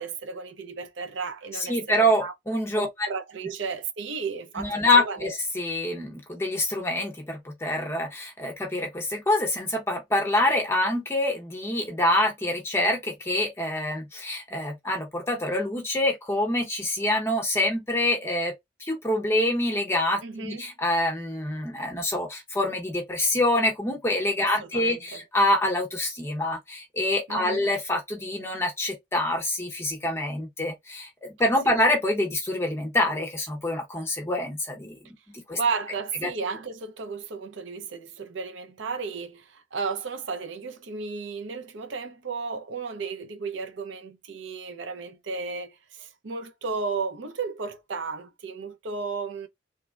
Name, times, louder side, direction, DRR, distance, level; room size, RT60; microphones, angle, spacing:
voice 1, 0.0-2.3 2.7-5.3 20.2-20.6 24.4-25.2 27.3-27.6 31.6-31.7 35.5-49.5, right 4 dB, 70° right, 0.5 m, -34 dB
voice 2, 1.5-2.9 4.6-18.5 18.8-35.6 36.2-36.3, left 1 dB, 15° left, 0.8 m, -26 dB
3.2 x 2.1 x 2.3 m
head